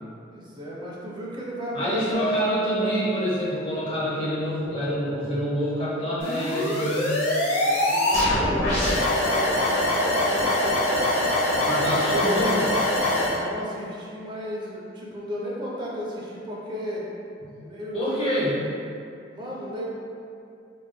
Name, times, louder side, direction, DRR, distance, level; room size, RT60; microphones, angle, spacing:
voice 1, 0.3-2.4 7.5-11.3 11.9-12.1 13.1-17.0 17.6-18.5 19.3-19.8, equal, 25° right, -5 dB, 0.5 m, -35 dB
voice 2, 1.7-7.1 11.6-12.7 17.4-17.6 17.9-18.6, equal, 30° left, -8 dB, 0.8 m, -27 dB
Mallet percussion, 2.1-4.4, right 2 dB, ahead, 0.9 m, -31 dB
sound 1, 6.2-13.4, left 1 dB, 80° left, 0.9 m, -23 dB
3.3 x 3.0 x 2.2 m, 2.5 s
head